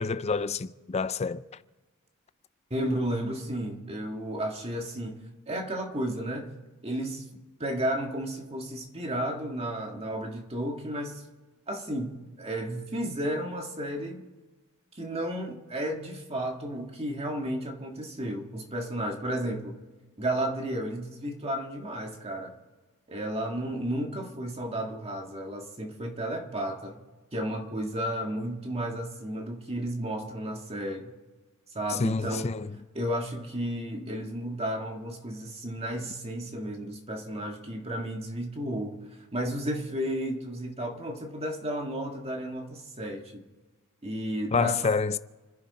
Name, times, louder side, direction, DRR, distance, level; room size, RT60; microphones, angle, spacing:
voice 1, 0.0-1.4 31.9-32.7 44.5-45.2, left 4 dB, 30° left, 0.5 m, -28 dB
voice 2, 2.7-5.2 5.5-6.5 6.8-7.2 7.6-11.2 11.7-14.2 15.0-19.8 20.2-22.5 23.1-27.0 27.3-31.1 31.7-32.5 32.9-39.0 39.3-43.4 44.0-44.9, right 1 dB, 30° right, 1.9 m, -33 dB
29.0 x 10.5 x 4.3 m
head